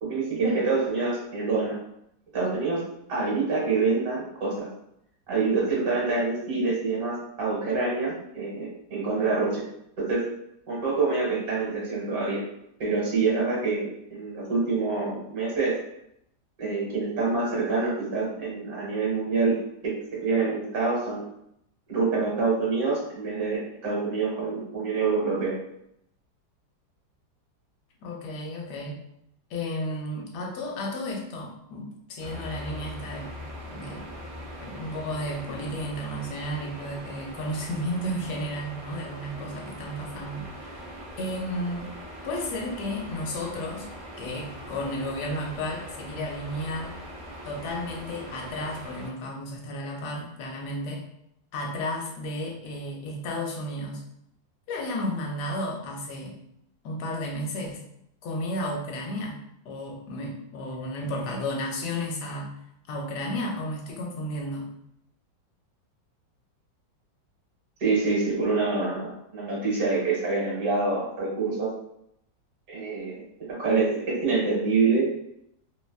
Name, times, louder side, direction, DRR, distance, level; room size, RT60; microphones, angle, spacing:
voice 1, 0.0-1.8 2.3-4.7 5.3-9.7 10.0-10.3 10.7-12.4 12.8-15.8 16.6-21.2 21.9-25.5 67.8-71.7 72.7-75.1, right 4 dB, 55° right, -4 dB, 1.5 m, -26 dB
voice 2, 28.0-29.0 29.5-33.3 33.7-34.0 34.6-41.9 42.2-43.9 44.2-47.0 47.4-51.0 51.5-54.0 54.7-56.4 56.8-57.8 58.2-62.5 62.9-64.7, left 1 dB, 70° left, 0 dB, 1.1 m, -33 dB
sound 1, 32.2-49.1, equal, 75° right, 0.4 m, -41 dB
3.0 x 2.2 x 2.3 m, 0.76 s
omnidirectional pair, 2.0 m